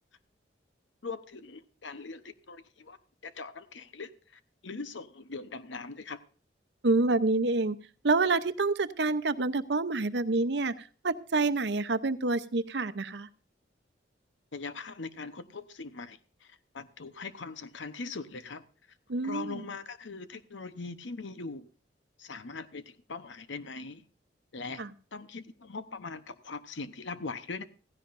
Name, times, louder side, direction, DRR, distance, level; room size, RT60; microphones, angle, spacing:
voice 1, 1.0-3.0 3.2-6.2 14.5-18.6 19.2-21.7 22.2-24.0 24.5-24.8 25.1-27.6, left 4 dB, 80° left, 11 dB, 0.9 m, -41 dB
voice 2, 6.8-7.8 8.0-13.3 19.1-19.7 24.8-24.9, right 3 dB, 65° right, 13 dB, 0.8 m, -27 dB
16.0 x 15.5 x 2.6 m, 0.40 s
head